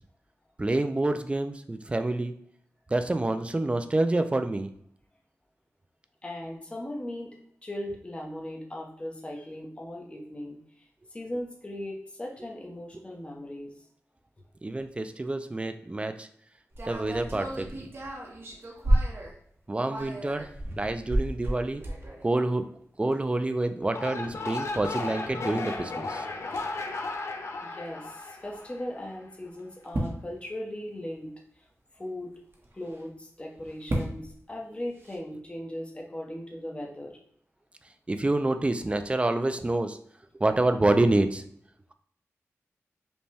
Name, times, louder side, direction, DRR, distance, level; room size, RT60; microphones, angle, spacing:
voice 1, 0.6-2.3 2.9-4.7 14.6-16.3 16.9-17.9 19.7-20.5 20.8-21.9 22.2-22.6 23.0-26.3 38.1-40.0 40.4-41.4, right 2 dB, 20° right, 8 dB, 0.3 m, -27 dB
voice 2, 6.2-7.4 7.6-13.7 27.6-31.3 31.6-31.7 31.9-32.3 32.7-37.2, left 1 dB, 20° left, 0 dB, 0.8 m, -38 dB
pages turning, 16.7-19.3 19.7-22.3 23.1-23.2 23.5-23.6 24.0-24.1 25.7-25.9 26.5-26.6 27.0-27.1 28.5-28.6 29.6-30.3 32.5-33.0 33.7-34.3 35.0-35.2, right 1 dB, 50° right, 0.9 m, -31 dB
sound 1, 23.8-29.1, left 3 dB, 60° left, 0.5 m, -35 dB
5.2 x 2.2 x 3.3 m, 0.65 s
wide cardioid pair, 95°, 5 cm